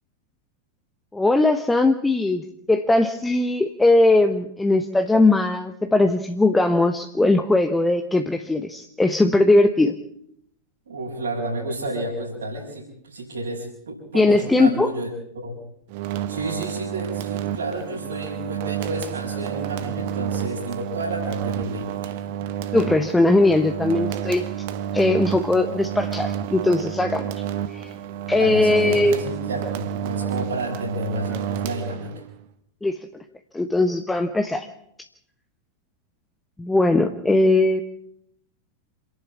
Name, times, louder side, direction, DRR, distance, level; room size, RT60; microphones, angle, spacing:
voice 1, 1.1-9.9 14.1-14.9 22.7-24.4 24.9-27.3 27.7-27.9 28.3-29.2 32.8-33.0 33.5-34.7 36.6-37.8, left 2 dB, 10° left, 6 dB, 1.2 m, -19 dB
voice 2, 10.9-15.1 15.4-15.6 16.3-22.2 28.3-32.1, right 1 dB, 70° right, -5 dB, 6.1 m, -31 dB
sound 1, 15.9-32.4, right 10 dB, 50° right, 1.3 m, -30 dB
28.0 x 11.0 x 8.7 m, 0.73 s
figure-of-eight pair, 90°, 0 cm